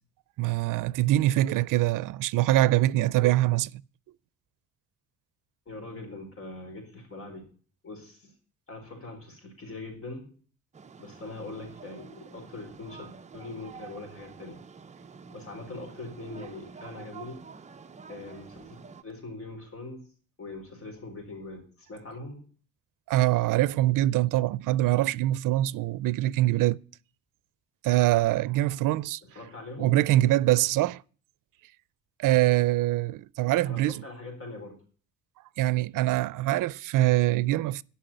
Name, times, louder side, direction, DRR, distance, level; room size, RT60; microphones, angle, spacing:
voice 1, 0.4-3.8 23.1-26.8 27.8-29.2 29.8-31.0 32.2-34.0 35.6-37.8, right 15 dB, 85° right, 0.5 m, -24 dB
voice 2, 5.7-7.5 7.8-8.3 8.7-10.2 11.0-14.6 15.3-17.4 18.1-18.8 19.0-20.0 20.4-22.4 29.3-30.0 33.6-34.8, left 2 dB, 45° left, 4.1 m, -42 dB
sound 1, 10.7-19.0, right 5 dB, 25° right, 0.5 m, -48 dB
13.0 x 5.8 x 9.0 m
cardioid pair, 150°, 31 cm